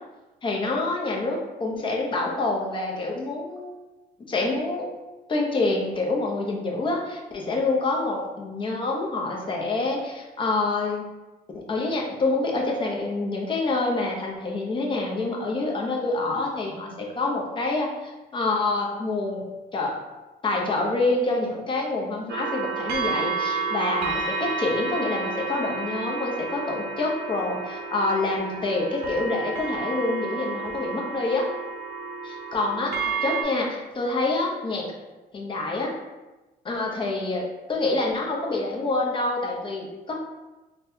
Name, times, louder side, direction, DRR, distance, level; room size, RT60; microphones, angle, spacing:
voice 1, 0.4-3.7 4.3-4.9 5.3-11.0 11.5-19.4 19.7-20.0 20.4-31.5 32.2-34.9 35.3-35.9 36.6-40.2, left 2 dB, 30° left, -1 dB, 0.7 m, -27 dB
sound 1, 22.3-33.4, right 4 dB, 75° right, 0.6 m, -31 dB
4.0 x 2.2 x 2.7 m, 1.1 s
cardioid pair, 110°, 17 cm